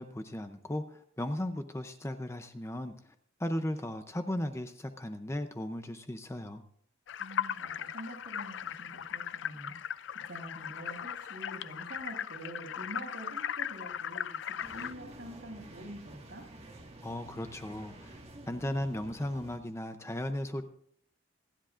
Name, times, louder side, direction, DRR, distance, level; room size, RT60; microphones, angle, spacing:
voice 1, 0.0-2.9 3.4-6.6 17.0-18.2 18.5-20.6, left 1 dB, 15° left, 8 dB, 0.6 m, -36 dB
sound 1, 7.1-14.9, left 9 dB, 70° left, 0.4 m, -38 dB
voice 2, 7.2-16.4, right 1 dB, 60° right, -3 dB, 6.1 m, -46 dB
sound 2, 14.6-19.6, right 1 dB, 30° right, 1.7 m, -50 dB
27.5 x 10.5 x 2.5 m, 0.66 s
head